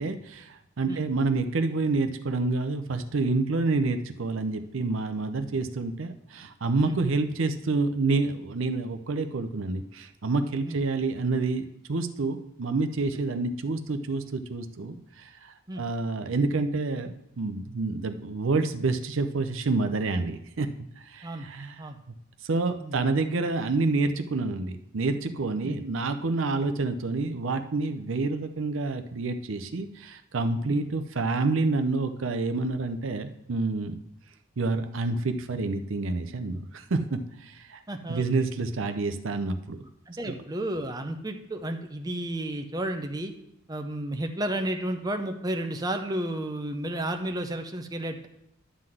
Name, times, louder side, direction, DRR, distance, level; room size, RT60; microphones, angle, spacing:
voice 1, 0.0-20.7 21.0-21.8 22.4-34.0 34.6-37.8 38.1-39.8 40.3-40.4, right 3 dB, 65° right, 8 dB, 0.6 m, -28 dB
voice 2, 37.9-38.5 40.1-43.3 43.7-48.3, right 1 dB, 20° right, 5 dB, 0.6 m, -32 dB
11.0 x 3.9 x 7.6 m, 0.81 s
head